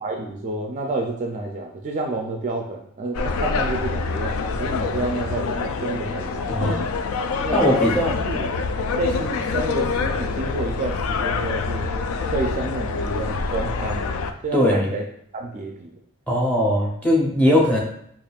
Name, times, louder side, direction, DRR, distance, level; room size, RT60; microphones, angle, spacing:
voice 1, 0.0-6.9 7.4-7.8 8.2-8.5 8.9-11.9 12.3-14.2 14.4-15.1 15.3-15.9, right 2 dB, 35° right, 2 dB, 0.3 m, -29 dB
sound 1, 3.1-14.3, left 4 dB, 75° left, 0.3 m, -26 dB
voice 2, 7.5-8.1 14.5-14.9 16.3-17.8, equal, 5° left, -2 dB, 0.7 m, -19 dB
5.0 x 2.4 x 2.3 m, 0.69 s
head